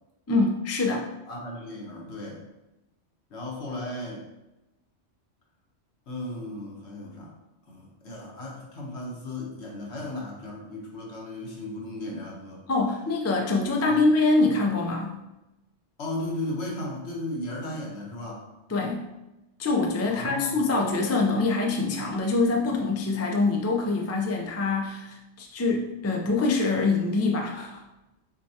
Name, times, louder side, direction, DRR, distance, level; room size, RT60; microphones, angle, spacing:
voice 1, 0.3-1.1 12.7-15.2 18.7-19.1 19.6-27.8, left 3 dB, 25° left, 1 dB, 0.3 m, -25 dB
voice 2, 1.3-2.4 3.3-4.3 6.1-7.3 7.6-12.6 13.9-14.0 16.0-18.4 20.0-20.6, left 1 dB, 80° left, -2 dB, 1.4 m, -35 dB
6.5 x 2.3 x 2.8 m, 0.99 s
omnidirectional pair, 1.1 m